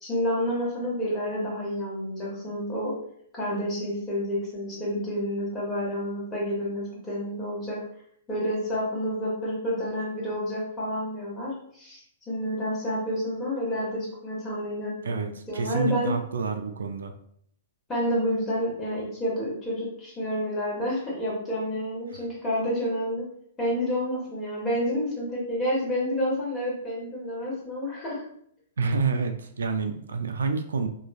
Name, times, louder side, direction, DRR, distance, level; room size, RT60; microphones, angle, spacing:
voice 1, 0.0-2.9 3.3-7.8 8.3-16.2 17.9-23.3 23.6-28.2, equal, 15° left, -5 dB, 1.4 m, -29 dB
voice 2, 15.0-17.1 28.8-30.9, right 4 dB, 85° right, 6 dB, 0.3 m, -28 dB
2.9 x 2.4 x 2.3 m, 0.67 s
hypercardioid pair, 130°, 0 cm